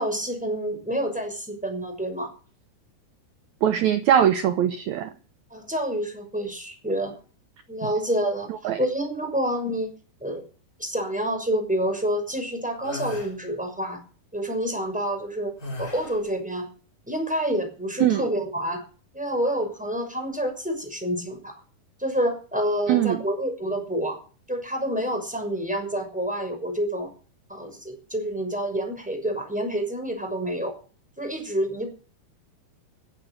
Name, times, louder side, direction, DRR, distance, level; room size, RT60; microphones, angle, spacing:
voice 1, 0.0-2.3 5.5-7.1 7.7-8.5 8.8-9.9 10.2-10.4 10.8-14.0 14.3-15.5 15.8-16.7 17.1-18.8 19.1-21.5 22.0-24.2 24.5-27.1 27.5-30.7 31.2-31.9, right 1 dB, ahead, 5.7 m, -28 dB
voice 2, 3.6-5.1 8.6-8.8 18.0-18.3 22.9-23.2, right 10 dB, 85° right, 1.6 m, -21 dB
sound 1, 12.8-13.3 15.6-16.3, left 2 dB, 25° left, 3.9 m, -35 dB
16.5 x 11.5 x 6.3 m
omnidirectional pair, 4.5 m